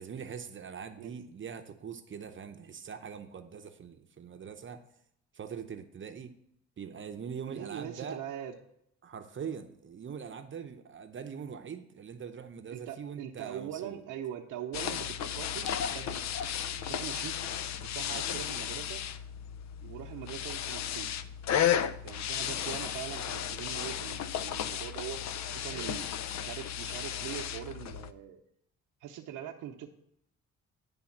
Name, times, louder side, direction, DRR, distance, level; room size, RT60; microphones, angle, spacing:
voice 1, 0.0-4.8 5.3-6.3 6.8-8.2 9.0-14.0 25.6-25.9, right 7 dB, 40° right, 7 dB, 0.8 m, -42 dB
voice 2, 7.5-8.6 12.7-16.2 16.7-17.4 17.8-19.0 19.8-21.1 22.0-26.1 26.4-28.4 29.0-29.9, right 10 dB, 90° right, 2 dB, 0.8 m, -42 dB
sound 1, 14.7-28.1, left 9 dB, 65° left, 0.6 m, -34 dB
9.9 x 3.5 x 7.1 m, 0.72 s
cardioid pair, 90°, 30 cm